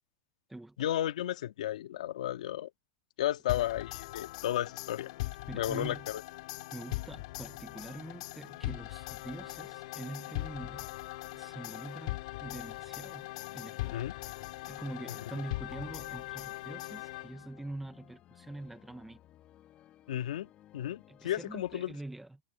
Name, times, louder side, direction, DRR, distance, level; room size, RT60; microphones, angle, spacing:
voice 1, 0.8-2.7 3.2-5.1 5.5-6.2 13.8-14.1 20.1-22.0, left 12 dB, 80° left, 2.1 m, -33 dB
sound 1, 3.5-17.6, left 19 dB, 65° left, 3.0 m, -40 dB
voice 2, 5.5-6.0 6.7-10.9 11.3-14.1 14.7-19.2 21.1-22.4, right 2 dB, 5° right, 1.5 m, -44 dB
sound 2, 12.3-21.8, left 13 dB, 30° left, 2.9 m, -59 dB
supercardioid pair, 150°, 4 cm